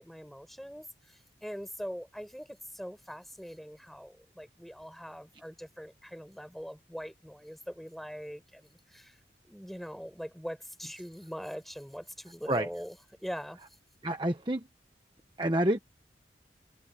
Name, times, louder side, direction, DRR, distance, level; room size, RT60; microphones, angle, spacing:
voice 1, 0.0-9.2 9.5-13.0 13.2-13.6, equal, ahead, 7.0 m, -42 dB
voice 2, 14.0-14.6 15.4-15.8, right 1 dB, 25° right, 1.1 m, -28 dB
head